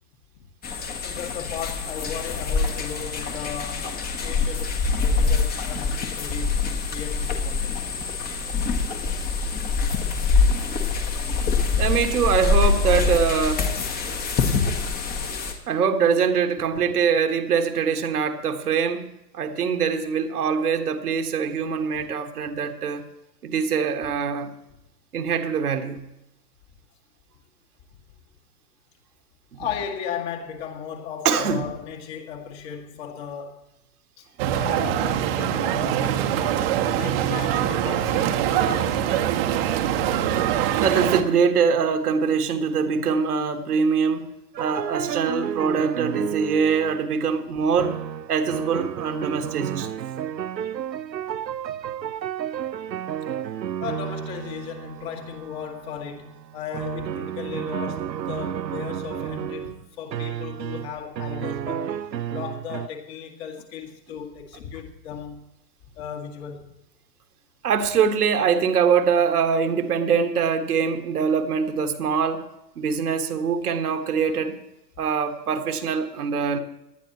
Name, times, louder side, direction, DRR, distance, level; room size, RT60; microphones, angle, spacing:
sound 1, 0.6-15.5, left 4 dB, 20° left, 1.4 m, -24 dB
voice 1, 1.0-3.9 4.2-6.6 6.9-8.0 29.5-33.6 34.2-34.3 34.5-39.4 39.8-40.3 53.8-62.0 62.3-65.4 65.9-66.7, left 8 dB, 40° left, 2.2 m, -36 dB
voice 2, 11.8-13.7 15.7-23.1 23.4-24.5 25.1-26.0 29.5-29.6 31.2-31.7 40.8-44.3 44.6-48.0 48.3-49.9 67.6-72.4 72.7-74.6 75.0-76.6, right 6 dB, 65° right, 1.6 m, -23 dB
sound 2, 34.4-41.2, right 10 dB, 35° right, 1.1 m, -23 dB
sound 3, 44.5-47.1 47.8-62.9, right 10 dB, 90° right, 0.6 m, -32 dB
18.5 x 11.5 x 3.0 m
figure-of-eight pair, 120°, 49 cm